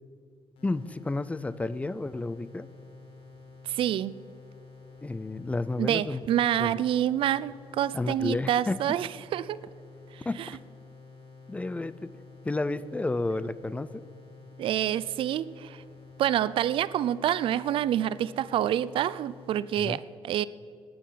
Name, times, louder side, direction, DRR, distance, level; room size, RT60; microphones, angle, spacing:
sound 1, 0.6-19.7, left 4 dB, 80° left, 4.2 m, -50 dB
voice 1, 0.6-2.7 5.0-6.2 6.6-6.8 7.9-8.8 10.3-10.6 11.5-12.1 12.4-14.0 19.8-20.0, left 2 dB, 15° left, 17 dB, 0.5 m, -31 dB
voice 2, 3.7-4.1 5.8-9.6 14.6-15.8 16.2-20.4, right 11 dB, 70° right, 18 dB, 0.4 m, -27 dB
19.5 x 9.5 x 5.7 m, 2.3 s
cardioid pair, 120°, 9 cm